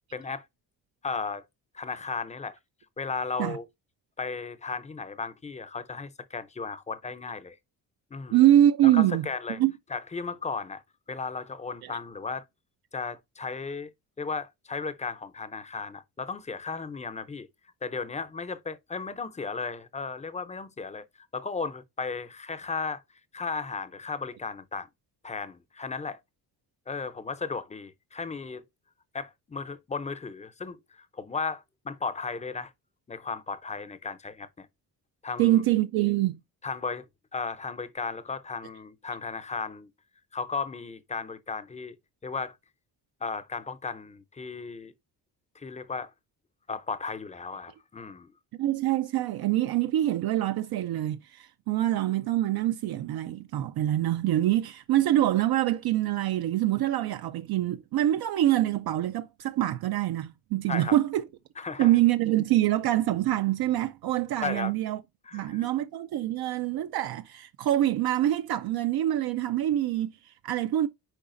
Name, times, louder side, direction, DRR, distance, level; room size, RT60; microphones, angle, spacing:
voice 1, 0.1-0.4 1.0-1.4 1.7-2.6 3.0-3.6 4.2-7.6 8.1-8.4 8.8-9.6 9.9-10.8 11.1-12.4 12.9-13.9 14.2-17.5 17.8-21.0 21.3-23.0 23.3-24.9 25.2-26.2 26.9-28.6 29.1-32.7 33.1-34.7 35.2-35.6 36.6-37.1 37.3-39.9 40.3-42.0 42.2-42.6 43.2-44.9 45.6-46.1 46.7-48.3 60.7-61.0 61.6-62.0 64.4-64.7 65.3-65.7, left 4 dB, 15° left, 0.5 m, -35 dB
voice 2, 8.3-9.3 9.6-9.7 11.8-11.9 35.4-36.4 48.6-61.3 61.8-65.0 65.3-70.9, right 13 dB, 65° right, 0.5 m, -25 dB
8.9 x 4.8 x 2.5 m
cardioid pair, 140°, 40 cm